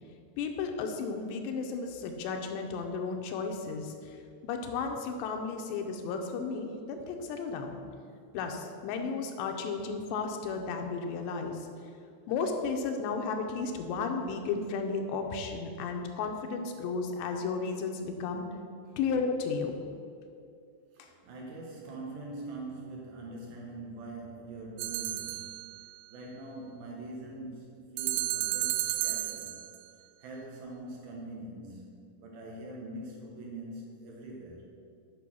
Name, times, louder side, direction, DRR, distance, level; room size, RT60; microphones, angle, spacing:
voice 1, 0.4-4.2 4.4-7.8 8.3-11.7 12.3-18.5 19.0-19.8 21.0-21.1, left 4 dB, 80° left, 4 dB, 2.8 m, -33 dB
voice 2, 20.9-25.7 26.1-29.6 30.2-34.6, right 2 dB, 70° right, -2 dB, 2.7 m, -43 dB
sound 1, 24.8-25.8 28.0-29.8, right 15 dB, 85° right, 2.8 m, -32 dB
8.5 x 5.9 x 6.1 m, 2.4 s
omnidirectional pair, 5.0 m